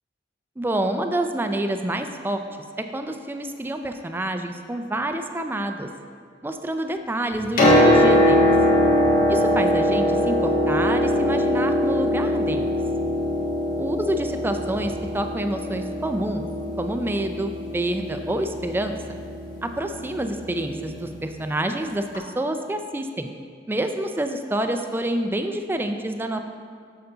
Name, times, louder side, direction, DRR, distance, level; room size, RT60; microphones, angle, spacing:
voice 1, 0.6-2.4 2.8-5.9 6.4-8.5 9.3-12.7 13.8-16.5 16.8-19.0 19.6-23.3 23.7-26.4, right 1 dB, 10° right, 6 dB, 0.4 m, -27 dB
Piano, 7.3-21.1 22.1-22.2, left 1 dB, 50° left, 1.5 m, -22 dB
6.8 x 6.6 x 3.9 m, 2.1 s
head